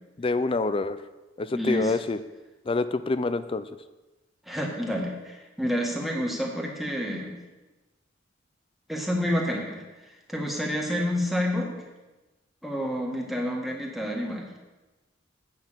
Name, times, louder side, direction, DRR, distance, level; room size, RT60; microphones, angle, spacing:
voice 1, 0.2-1.0 1.4-2.2 2.7-3.6, left 3 dB, 30° left, 13 dB, 0.4 m, -26 dB
voice 2, 1.5-1.9 4.5-7.4 8.9-9.8 10.3-11.7 12.6-14.5, equal, ahead, -2 dB, 1.7 m, -29 dB
8.9 x 5.7 x 7.4 m, 1.1 s
head